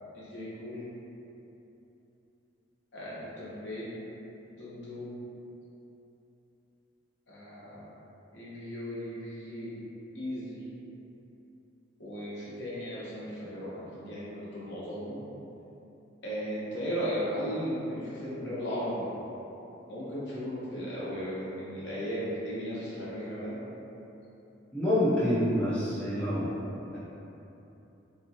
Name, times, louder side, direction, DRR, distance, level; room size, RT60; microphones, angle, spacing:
voice 1, 0.1-0.8 2.9-3.9 4.6-5.2 7.3-7.9 8.3-9.8 10.1-10.7 12.0-15.2 16.2-19.1 19.9-23.6, equal, 60° left, -9 dB, 1.0 m, -36 dB
voice 2, 24.7-26.6, left 1 dB, 5° left, -12 dB, 0.6 m, -27 dB
3.5 x 2.9 x 2.8 m, 3.0 s
head